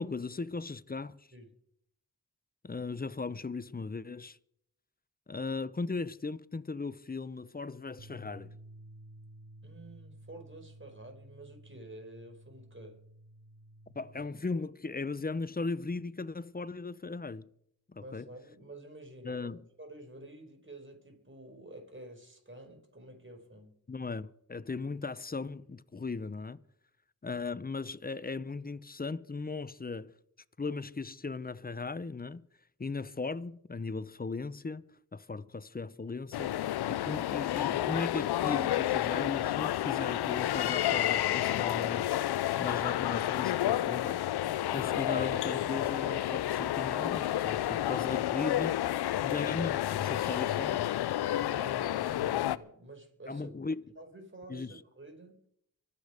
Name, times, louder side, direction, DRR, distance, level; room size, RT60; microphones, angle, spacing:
voice 1, 0.0-1.2 2.6-4.4 5.3-8.5 13.9-17.5 17.9-18.3 19.2-19.6 23.9-26.6 27.2-30.1 30.6-32.4 32.8-34.8 35.1-36.5 36.9-42.1 42.6-44.2 44.7-48.7 49.2-50.9 53.3-53.8 54.5-54.7, left 4 dB, 25° left, 0.8 m, -37 dB
sound 1, 8.0-14.2, right 1 dB, 50° right, 1.5 m, -53 dB
voice 2, 9.6-13.0 18.0-23.8 51.2-53.5 53.9-55.4, right 1 dB, 30° right, 5.1 m, -49 dB
sound 2, 36.3-52.6, left 13 dB, 90° left, 0.5 m, -30 dB
24.5 x 8.5 x 5.1 m
cardioid pair, 40°, 37 cm